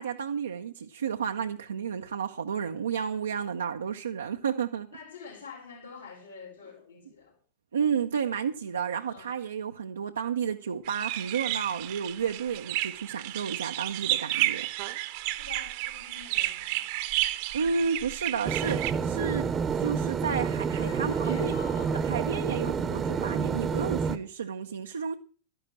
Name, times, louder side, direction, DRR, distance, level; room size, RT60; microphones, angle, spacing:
voice 1, 0.0-4.9 7.7-14.7 17.3-21.6 22.0-25.2, right 7 dB, 70° right, 0.7 m, -31 dB
voice 2, 4.9-7.4 9.1-9.3 15.3-16.9 20.8-22.0, left 5 dB, 75° left, 5.2 m, -47 dB
sound 1, 10.8-18.9, right 16 dB, 50° right, 0.9 m, -32 dB
sound 2, 18.4-24.2, right 6 dB, 20° right, 0.9 m, -29 dB
12.5 x 11.0 x 6.0 m
figure-of-eight pair, 90°, 0 cm